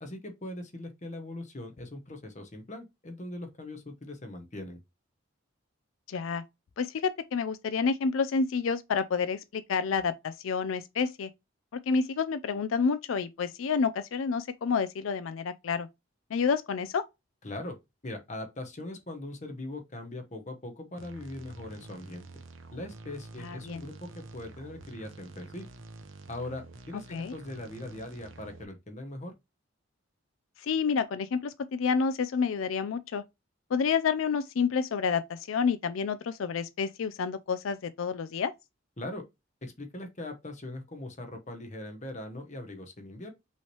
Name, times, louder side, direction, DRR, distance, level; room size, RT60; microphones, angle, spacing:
voice 1, 0.0-4.8 17.4-17.8 18.0-22.3 22.7-25.6 26.3-29.3 39.0-39.2 39.6-43.3, left 1 dB, 35° left, 0.9 m, -40 dB
voice 2, 6.1-6.4 6.8-11.3 11.7-15.9 16.3-17.0 23.4-23.8 27.1-27.3 30.6-33.2 33.7-38.5, left 5 dB, 80° left, 0.4 m, -29 dB
sound 1, 21.0-28.6, right 3 dB, 75° right, 0.9 m, -48 dB
5.5 x 3.1 x 2.9 m
head